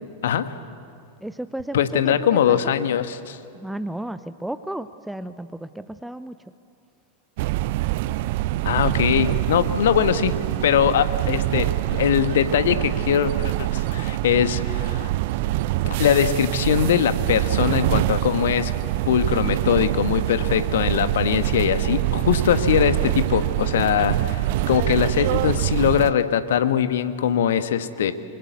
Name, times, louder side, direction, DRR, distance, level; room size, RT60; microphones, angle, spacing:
voice 1, 0.2-0.6 1.7-3.4 8.6-10.3 10.6-15.1 15.8-18.7 19.1-28.1, left 9 dB, 60° left, 11 dB, 1.3 m, -21 dB
voice 2, 1.2-2.7 3.5-6.4, right 1 dB, 5° right, 12 dB, 0.7 m, -33 dB
sound 1, 7.4-26.1, right 16 dB, 50° right, 0.5 m, -24 dB
25.0 x 24.0 x 8.2 m, 2.5 s
figure-of-eight pair, 90°, 0 cm